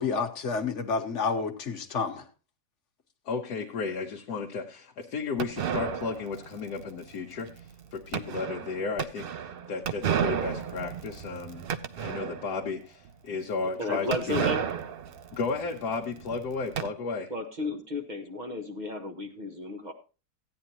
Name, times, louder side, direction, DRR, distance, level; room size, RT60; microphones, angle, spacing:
voice 1, 0.0-2.2, left 5 dB, 50° left, 5 dB, 1.4 m, -29 dB
voice 2, 3.2-7.6 7.9-9.3 9.7-11.7 12.0-14.5 15.3-17.3, left 4 dB, 70° left, 0 dB, 1.4 m, -33 dB
sound 1, 5.4-12.7 13.1-13.2 13.3-13.4 14.1-16.9, right 8 dB, 70° right, 0.5 m, -33 dB
voice 3, 13.8-14.7 17.3-19.9, left 2 dB, 30° right, 5 dB, 1.2 m, -33 dB
15.5 x 9.5 x 2.9 m, 0.32 s
omnidirectional pair, 1.7 m